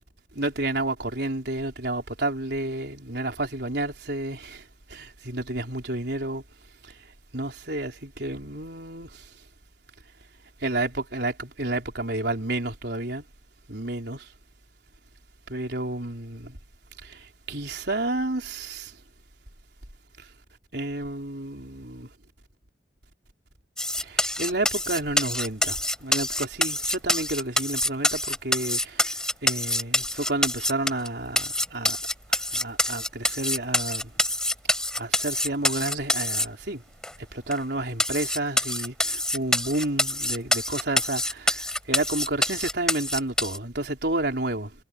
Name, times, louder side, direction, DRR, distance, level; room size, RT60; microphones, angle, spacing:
voice 1, 0.3-6.4 6.8-7.0 7.3-9.3 10.6-13.2 13.7-14.3 15.5-16.6 17.0-19.0 20.2-20.3 20.7-22.1 24.0-32.0 32.3-34.1 35.0-36.8 37.2-44.7, right 2 dB, 65° right, 4.2 m, -31 dB
sound 1, 23.8-31.1 31.4-36.5 37.0-37.1 37.5-37.6 38.0-43.6, left 1 dB, 5° left, 4.7 m, -26 dB
head